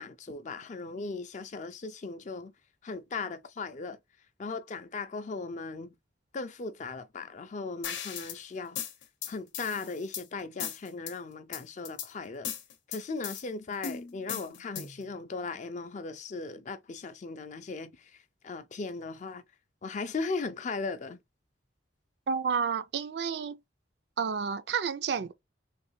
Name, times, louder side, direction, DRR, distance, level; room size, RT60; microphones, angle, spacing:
voice 1, 0.0-2.5 2.8-4.0 4.4-6.0 6.3-8.8 9.3-12.5 12.9-19.4 19.8-21.2, left 4 dB, 40° left, 0.4 m, -38 dB
sound 1, 7.8-8.4 8.8-10.2 10.6-11.1 11.5-12.1 12.4-13.4 13.8-15.0, left 8 dB, 90° left, 0.7 m, -37 dB
voice 2, 22.3-23.6 24.2-25.3, right 6 dB, 60° right, 0.4 m, -30 dB
3.2 x 2.7 x 3.1 m
head